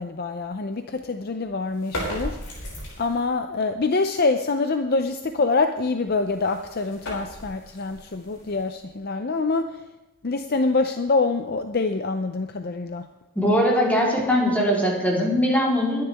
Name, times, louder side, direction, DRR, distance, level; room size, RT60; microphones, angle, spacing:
voice 1, 0.0-2.4 3.0-9.7 10.2-13.1, left 3 dB, 45° left, 7 dB, 0.5 m, -25 dB
sound 1, 1.7-3.3 6.0-9.0, equal, 75° left, 6.0 m, -36 dB
voice 2, 13.4-16.0, equal, 5° left, -4 dB, 3.6 m, -21 dB
22.0 x 10.5 x 3.5 m, 0.97 s
head